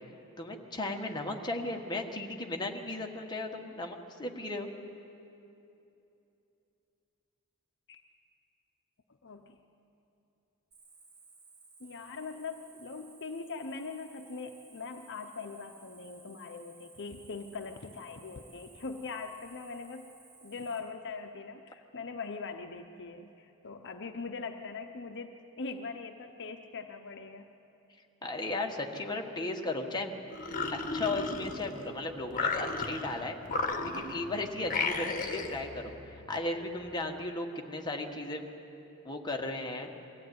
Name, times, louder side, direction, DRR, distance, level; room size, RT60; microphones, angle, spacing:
voice 1, 0.4-4.7 28.2-30.2 30.7-33.4 33.9-38.4 39.0-39.9, left 2 dB, 20° left, 2 dB, 1.6 m, -36 dB
voice 2, 9.2-9.6 11.8-20.1 20.4-27.5 34.6-34.9, left 4 dB, 55° left, 6 dB, 0.8 m, -41 dB
Cricket, 10.7-20.8, right 4 dB, 50° right, 7.0 m, -58 dB
sound 1, 30.3-31.9 32.3-33.1 33.5-34.3 34.7-35.6, left 3 dB, 40° left, 1.5 m, -33 dB
sound 2, 31.4-36.7, equal, 10° right, 4.3 m, -51 dB
22.5 x 15.0 x 9.4 m, 2.9 s
head